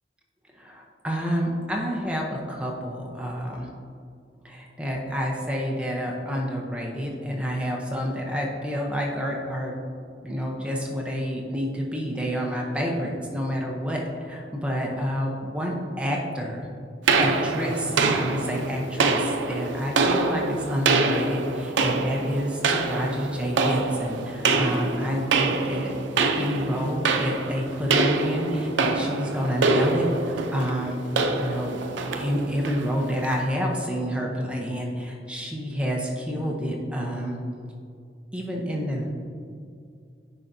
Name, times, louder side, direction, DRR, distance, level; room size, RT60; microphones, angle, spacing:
voice 1, 0.6-3.7 4.4-9.7 10.2-16.7 17.2-25.9 26.3-31.0 31.3-31.8 32.1-37.4 38.3-39.0, equal, 5° right, -1 dB, 0.7 m, -29 dB
sound 1, 17.1-33.4, right 3 dB, 90° right, 0.5 m, -25 dB
10.0 x 4.8 x 2.6 m, 2.4 s
head